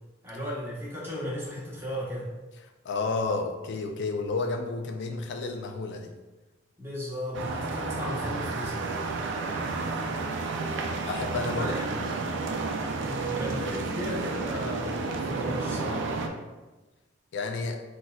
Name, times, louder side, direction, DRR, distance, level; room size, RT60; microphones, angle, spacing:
voice 1, 0.2-2.3 6.8-8.8 11.5-12.0 13.0-16.0, equal, 15° right, -8 dB, 1.1 m, -35 dB
voice 2, 2.8-6.1 11.1-12.3 17.3-17.8, left 3 dB, 60° left, 5 dB, 0.4 m, -31 dB
sound 1, 7.3-16.3, right 3 dB, 65° right, 0.4 m, -31 dB
4.2 x 2.5 x 2.3 m, 1.1 s
head